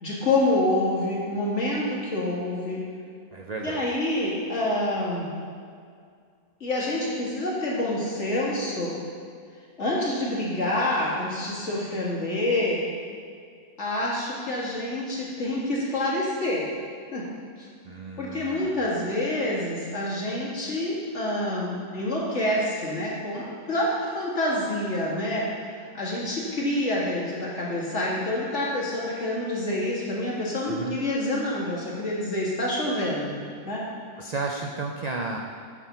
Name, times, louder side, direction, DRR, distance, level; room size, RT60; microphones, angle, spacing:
voice 1, 0.0-2.8 3.6-5.3 6.6-9.0 9.8-12.8 13.8-16.6 17.1-17.2 18.2-25.5 25.9-33.4 33.7-33.8, left 1 dB, 50° left, -5 dB, 2.3 m, -27 dB
voice 2, 3.3-3.8 17.8-19.0 30.6-31.0 34.2-35.4, right 3 dB, 65° right, 1 dB, 0.4 m, -33 dB
8.8 x 5.1 x 6.9 m, 2.2 s
omnidirectional pair, 1.6 m